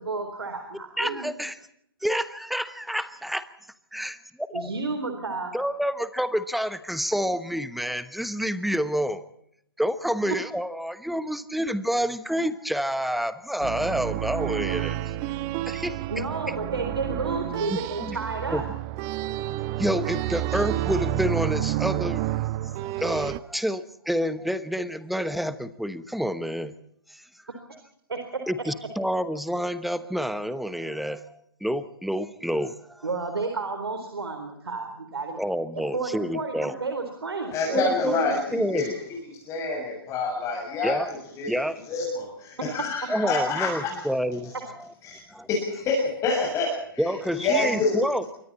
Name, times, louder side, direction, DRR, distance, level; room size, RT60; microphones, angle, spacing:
voice 1, 0.0-1.3 4.5-5.5 10.3-10.4 16.1-18.7 28.1-28.4 33.0-35.4 35.7-38.3 42.6-42.7 43.0-43.1, right 3 dB, 90° right, 5 dB, 4.1 m, -31 dB
voice 2, 1.0-1.6 2.0-3.5 3.9-4.7 5.5-9.2 9.8-15.0 15.7-16.0 17.7-18.2 18.5-18.6 19.8-26.7 27.1-27.2 28.5-33.1 35.4-36.7 37.7-38.2 38.5-39.0 40.8-41.1 41.5-41.8 43.1-44.5 45.3-45.5 47.0-48.2, equal, ahead, 13 dB, 1.1 m, -28 dB
sound 1, 13.6-23.4, right 15 dB, 30° right, 1.1 m, -30 dB
voice 3, 37.5-39.2 39.4-41.0 41.4-41.5 41.9-44.0 45.0-45.2 45.5-47.0 47.3-48.0, left 3 dB, 25° left, -2 dB, 7.1 m, -27 dB
27.5 x 24.5 x 4.2 m, 0.72 s
hypercardioid pair, 135°, 13 cm